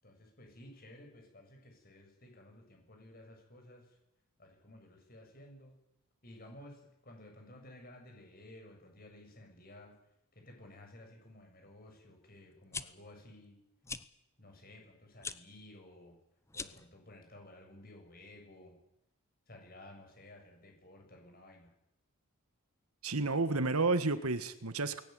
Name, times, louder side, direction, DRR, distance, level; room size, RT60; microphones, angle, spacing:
voice 1, 0.0-4.0 4.4-5.8 6.2-9.9 10.3-13.6 14.4-16.2 16.5-18.8 19.5-21.7, left 1 dB, 40° left, 3 dB, 7.5 m, -55 dB
sound 1, 12.5-12.8 13.8-14.0 15.2-15.4 16.5-16.9, left 4 dB, 10° left, 0.8 m, -41 dB
voice 2, 23.0-25.0, right 3 dB, 85° right, 11 dB, 1.7 m, -31 dB
20.5 x 17.5 x 9.6 m, 0.82 s
head